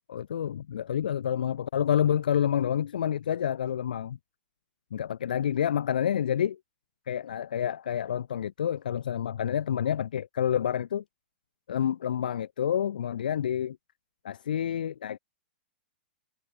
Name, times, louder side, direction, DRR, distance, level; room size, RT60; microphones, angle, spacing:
voice 1, 0.1-4.2 4.9-6.6 7.1-11.0 11.7-13.8 14.2-15.2, left 9 dB, 60° left, 0.4 m, -28 dB
figure-of-eight pair, 105°, 5 cm